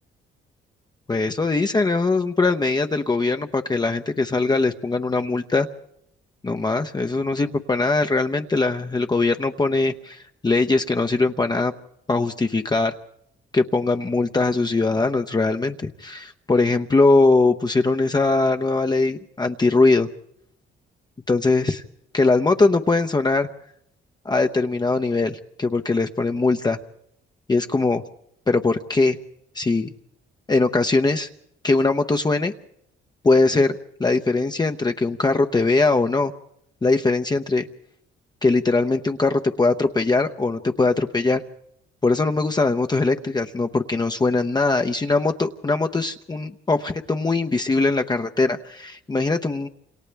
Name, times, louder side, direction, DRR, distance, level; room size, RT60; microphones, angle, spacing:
voice 1, 1.1-5.7 6.4-11.7 12.1-12.9 13.5-20.1 21.3-21.8 22.1-23.5 24.2-26.8 27.5-28.0 28.5-29.2 29.5-29.9 30.5-31.3 31.6-32.5 33.2-36.3 36.8-37.7 38.4-41.4 42.0-49.7, left 3 dB, 20° left, 5 dB, 0.8 m, -21 dB
28.5 x 27.0 x 3.4 m, 0.74 s
cardioid pair, 90°, 20 cm